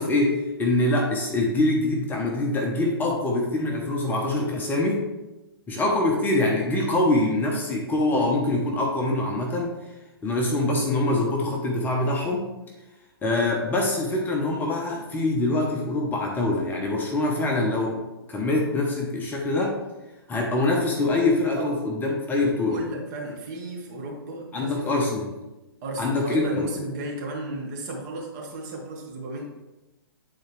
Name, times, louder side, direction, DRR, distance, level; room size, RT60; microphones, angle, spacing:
voice 1, 0.0-5.1 5.7-9.7 10.2-12.5 13.2-18.0 18.3-19.7 20.3-22.8 24.5-25.3 26.0-26.7, left 2 dB, 15° left, -1 dB, 1.0 m, -24 dB
voice 2, 22.3-25.1 25.8-29.4, right 2 dB, 40° right, -1 dB, 1.7 m, -34 dB
9.0 x 4.2 x 3.3 m, 1.0 s
figure-of-eight pair, 120°, 13 cm